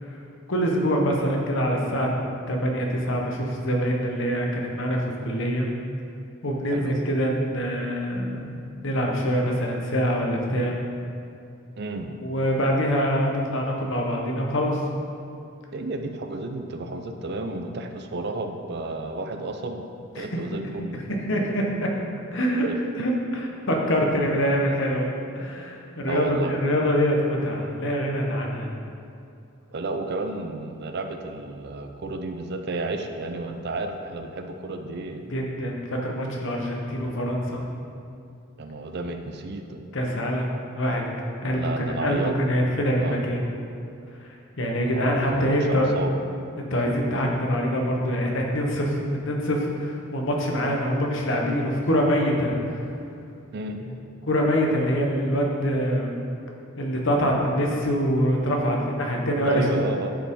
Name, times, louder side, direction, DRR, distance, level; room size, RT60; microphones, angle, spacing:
voice 1, 0.5-2.1 2.5-5.7 6.4-8.6 8.8-10.7 12.2-14.8 20.2-20.4 21.1-21.9 22.3-22.7 22.9-25.1 25.3-28.7 35.3-37.6 39.9-41.0 41.4-43.4 44.6-46.0 46.6-49.0 49.2-52.8 54.2-56.1 56.8-59.7, equal, 60° left, 0 dB, 1.1 m, -24 dB
voice 2, 6.7-7.0 11.8-12.1 15.7-19.8 20.1-21.0 22.7-22.8 26.1-26.6 29.7-35.2 38.6-39.8 41.5-42.3 43.0-43.2 44.7-46.1 53.5-53.8 59.4-60.2, right 2 dB, 50° right, 5 dB, 0.5 m, -32 dB
10.0 x 5.0 x 3.7 m, 2.6 s
head